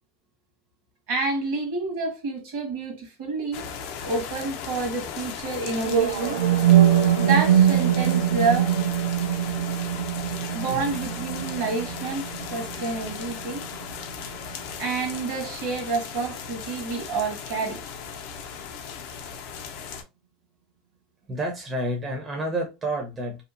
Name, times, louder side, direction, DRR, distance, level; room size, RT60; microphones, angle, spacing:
voice 1, 1.1-3.6 4.0-6.4 7.2-8.7 10.5-12.2 12.5-13.6 14.8-17.8, right 3 dB, 60° right, 1.2 m, -28 dB
sound 1, 3.5-20.0, left 7 dB, 60° left, 0.5 m, -37 dB
sound 2, 5.8-13.8, right 10 dB, 85° right, 0.5 m, -22 dB
voice 2, 21.3-23.5, right 1 dB, 20° right, 0.6 m, -30 dB
2.7 x 2.1 x 2.4 m
supercardioid pair, 155°, 0 cm